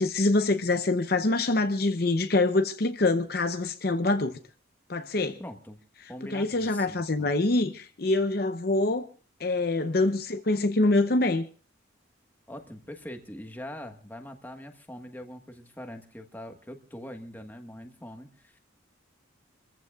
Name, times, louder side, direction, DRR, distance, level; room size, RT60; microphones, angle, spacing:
voice 1, 0.0-4.4 4.9-5.4 6.3-9.1 9.4-11.5, left 2 dB, 50° left, 0.7 m, -25 dB
voice 2, 5.4-5.8 6.1-7.3 12.5-18.6, left 1 dB, 10° left, 1.3 m, -43 dB
27.5 x 14.5 x 2.4 m
head